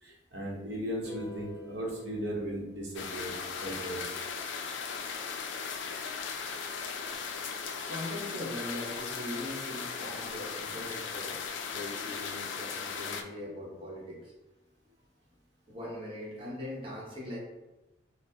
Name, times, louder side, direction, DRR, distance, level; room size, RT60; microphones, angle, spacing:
voice 1, 0.0-4.0, equal, 55° right, -3 dB, 0.8 m, -37 dB
sound 1, 1.0-3.4, left 2 dB, 25° left, 1.0 m, -48 dB
sound 2, 2.9-13.2, left 5 dB, 70° left, 0.3 m, -37 dB
voice 2, 7.8-14.3 15.7-17.4, left 1 dB, 30° right, -5 dB, 1.0 m, -41 dB
4.4 x 2.0 x 2.8 m, 1.0 s
head